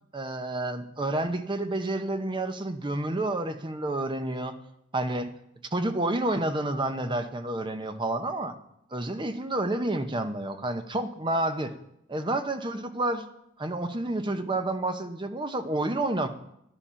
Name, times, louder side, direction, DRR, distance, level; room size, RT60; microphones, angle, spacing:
voice 1, 0.1-4.5 4.9-5.3 5.7-8.5 8.9-11.7 12.1-13.2 13.6-16.3, right 2 dB, 25° right, 8 dB, 0.8 m, -29 dB
11.5 x 10.0 x 5.7 m, 0.79 s
head